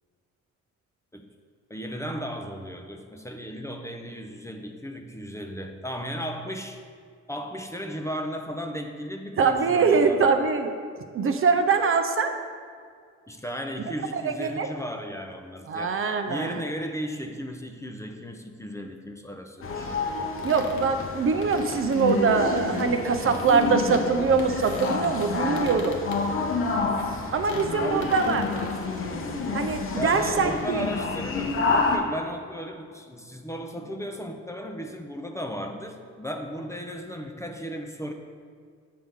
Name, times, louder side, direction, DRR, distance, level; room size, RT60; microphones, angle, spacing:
voice 1, 1.7-6.8 7.3-10.3 13.3-16.0 16.3-20.0 23.2-23.7 27.8-28.2 29.9-38.1, equal, 10° left, 3 dB, 0.6 m, -35 dB
voice 2, 9.4-10.7 11.1-12.3 14.1-14.7 15.7-16.6 20.4-26.0 27.3-28.4 29.5-30.9, right 5 dB, 45° right, 6 dB, 0.6 m, -23 dB
sound 1, 19.6-32.0, left 3 dB, 45° left, 0.9 m, -29 dB
sound 2, 20.4-24.1 24.4-26.2 26.6-26.7 26.9-27.0 27.4-27.7 28.0-28.7, left 4 dB, 75° left, 1.0 m, -40 dB
7.6 x 3.5 x 6.5 m, 2.1 s
cardioid pair, 90°, 30 cm